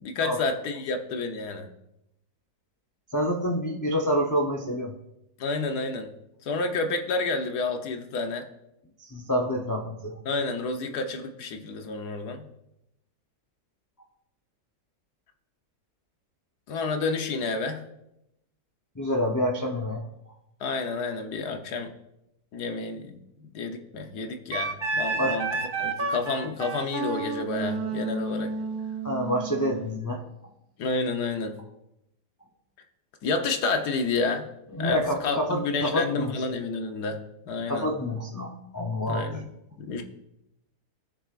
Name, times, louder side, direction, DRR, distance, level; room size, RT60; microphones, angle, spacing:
voice 1, 0.0-1.7 5.4-6.1 6.4-8.5 10.2-12.5 16.7-17.8 20.6-21.9 22.5-25.5 25.8-28.5 30.8-31.6 33.2-34.5 34.8-37.2 37.5-37.9 39.1-39.5 39.8-40.0, left 3 dB, 85° left, 5 dB, 1.5 m, -30 dB
voice 2, 3.1-4.9 9.0-10.2 19.0-20.0 25.2-25.4 29.0-30.3 34.7-36.3 37.7-39.3, equal, 20° left, -1 dB, 0.4 m, -27 dB
Wind instrument woodwind instrument, 24.5-29.9, right 3 dB, 45° right, 0.8 m, -31 dB
17.5 x 6.5 x 2.5 m, 0.86 s
omnidirectional pair, 1.7 m